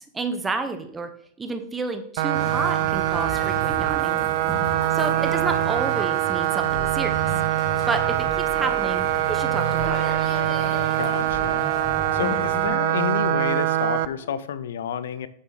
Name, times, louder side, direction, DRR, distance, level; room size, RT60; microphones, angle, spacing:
voice 1, 0.1-1.1 1.4-4.2 4.9-7.2 7.9-10.2, right 3 dB, 15° right, 8 dB, 1.0 m, -30 dB
sound 1, 2.2-14.1, right 14 dB, 65° right, 0.4 m, -24 dB
sound 2, 2.3-12.7, equal, 5° left, 3.0 m, -35 dB
Brass instrument, 9.5-12.2 13.8-14.4, left 5 dB, 55° left, 1.3 m, -38 dB
voice 2, 11.0-11.6 12.1-15.3, left 8 dB, 80° left, 14 dB, 0.6 m, -30 dB
7.5 x 4.8 x 4.1 m, 0.66 s
hypercardioid pair, 115°, 0 cm